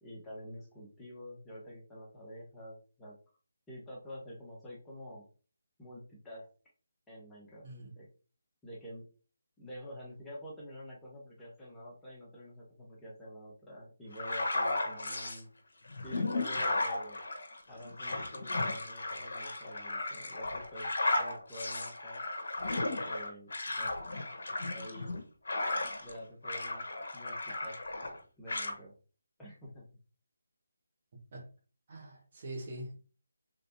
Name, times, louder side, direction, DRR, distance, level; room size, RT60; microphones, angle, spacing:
voice 1, 0.0-3.2 3.7-5.2 5.8-6.5 7.1-7.7 8.0-8.1 8.6-9.1 9.6-15.5 16.0-17.2 17.7-22.2 23.0-23.5 23.8-24.3 24.7-25.2 26.0-27.8 28.4-28.9 29.4-29.9, equal, 5° left, -6 dB, 1.0 m, -48 dB
voice 2, 7.6-7.9 31.3-31.5 31.9-33.0, right 1 dB, 40° right, -2 dB, 1.5 m, -43 dB
sound 1, 14.1-15.4 15.9-26.2 26.4-28.2 28.5-28.7, left 2 dB, 60° left, 0.9 m, -35 dB
4.1 x 3.3 x 2.7 m, 0.38 s
figure-of-eight pair, 155°, 0 cm